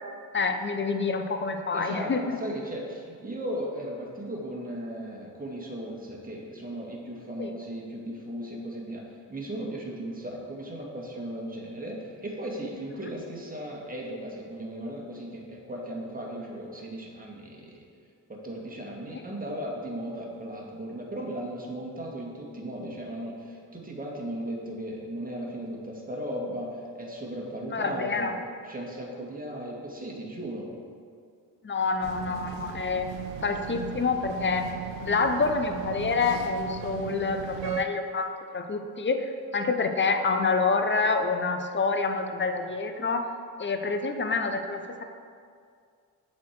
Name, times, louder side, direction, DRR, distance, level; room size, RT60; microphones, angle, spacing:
voice 1, 0.3-2.4 7.4-7.5 13.0-13.1 27.7-28.4 31.6-33.1 33.4-34.7 35.0-43.3 43.6-45.0, left 4 dB, 25° left, 6 dB, 0.7 m, -27 dB
voice 2, 1.7-17.8 18.3-28.3 28.6-30.7, right 1 dB, 20° right, -2 dB, 1.8 m, -36 dB
sound 1, 32.0-37.9, right 9 dB, 65° right, 0.6 m, -37 dB
6.9 x 4.5 x 4.6 m, 2.2 s
hypercardioid pair, 40°, 46 cm